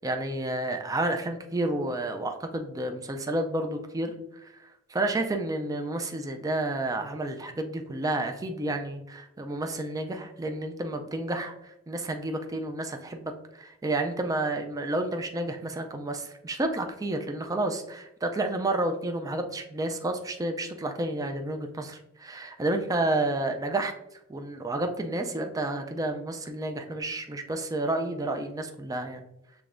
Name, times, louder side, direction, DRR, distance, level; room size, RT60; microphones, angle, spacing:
voice 1, 0.0-4.1 4.4-23.9 24.3-29.2, right 2 dB, 15° right, 5 dB, 0.3 m, -30 dB
5.9 x 3.4 x 2.5 m, 0.87 s
head